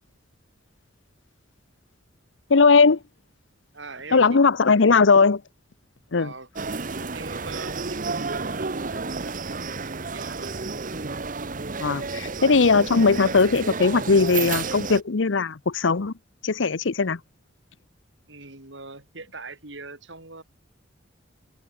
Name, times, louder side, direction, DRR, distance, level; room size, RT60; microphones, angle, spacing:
voice 1, 2.5-3.0 4.1-5.4 6.1-6.3 11.8-16.1 16.4-17.2, left 4 dB, 75° left, 0.8 m, -19 dB
voice 2, 3.7-4.4 6.2-6.5 7.1-10.6 12.1-12.3 18.3-20.4, right 3 dB, 70° right, 6.1 m, -42 dB
sound 1, 6.6-15.0, right 4 dB, 45° right, 1.1 m, -31 dB
head